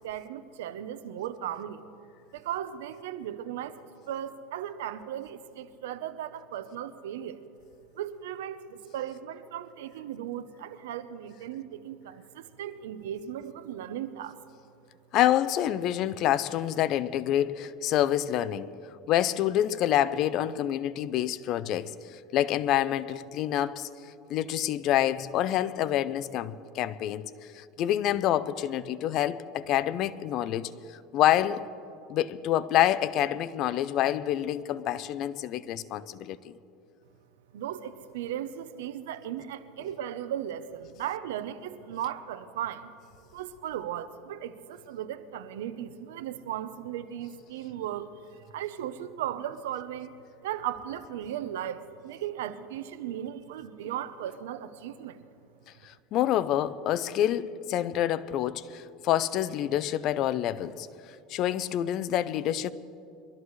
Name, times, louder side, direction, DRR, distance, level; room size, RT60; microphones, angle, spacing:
voice 1, 0.0-1.8 2.3-7.4 8.0-14.4 37.5-42.9 43.3-50.1 50.4-55.2, right 10 dB, 85° right, 0.7 m, -37 dB
voice 2, 15.1-18.7 19.1-23.9 24.3-27.2 27.5-31.6 32.1-36.5 55.8-60.9 61.3-62.7, left 12 dB, 50° left, 0.5 m, -27 dB
23.0 x 13.0 x 3.2 m
supercardioid pair, 115°, 0 cm